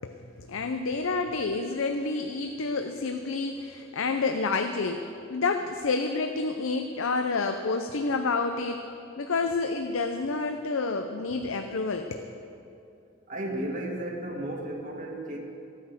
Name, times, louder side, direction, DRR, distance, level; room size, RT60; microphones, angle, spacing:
voice 1, 0.0-8.8 9.2-12.2, left 3 dB, 90° left, 5 dB, 0.7 m, -29 dB
voice 2, 13.3-15.4, right 1 dB, 40° right, 0 dB, 1.8 m, -34 dB
15.5 x 9.3 x 6.6 m, 2.7 s
head